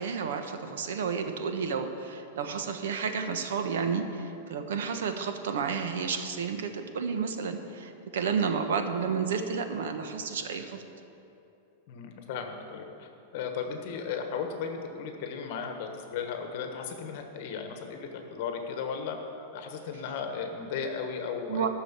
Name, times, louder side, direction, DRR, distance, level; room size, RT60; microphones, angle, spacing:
voice 1, 0.0-10.8 21.5-21.7, right 6 dB, 85° right, 7 dB, 1.1 m, -31 dB
voice 2, 11.9-19.2 19.5-21.7, left 6 dB, 45° left, 5 dB, 1.3 m, -35 dB
13.5 x 6.3 x 7.4 m, 2.8 s
supercardioid pair, 170°, 0 cm